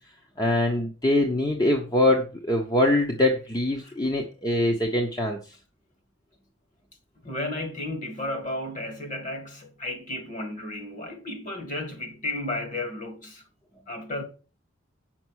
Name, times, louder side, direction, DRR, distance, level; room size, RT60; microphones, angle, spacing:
voice 1, 0.4-5.4, left 1 dB, 20° left, 1.0 m, -23 dB
voice 2, 7.2-13.4 13.9-14.2, left 1 dB, 40° left, 2.1 m, -33 dB
7.9 x 6.0 x 6.3 m
head